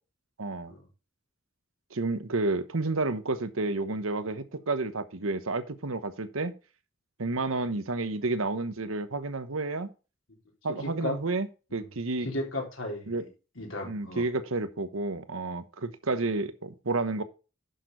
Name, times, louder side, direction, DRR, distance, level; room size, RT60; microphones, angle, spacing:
voice 1, 0.4-0.7 1.9-6.5 7.2-9.9 10.6-12.3 13.1-13.2 13.8-17.2, right 3 dB, 85° right, 1.1 m, -30 dB
voice 2, 10.8-11.2 11.7-11.9 12.2-13.3 13.6-14.3, left 1 dB, 75° left, 3.8 m, -35 dB
10.5 x 6.7 x 3.9 m
head